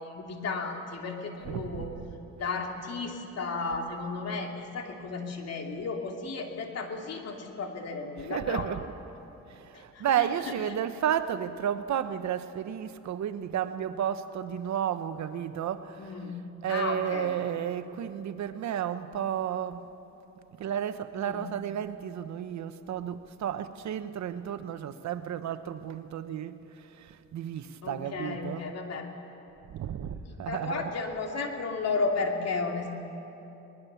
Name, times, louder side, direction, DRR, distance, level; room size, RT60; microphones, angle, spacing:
voice 1, 0.0-1.9 2.4-8.7 9.7-10.3 16.0-16.3 16.7-17.3 21.2-21.4 27.8-29.1 30.3-32.9, left 4 dB, 55° left, 2.9 m, -33 dB
voice 2, 1.4-2.2 8.2-8.9 9.5-16.2 16.6-19.8 20.6-28.7 29.7-31.0, right 9 dB, 65° right, 1.0 m, -32 dB
23.5 x 20.0 x 7.0 m
cardioid pair, 90°, 30 cm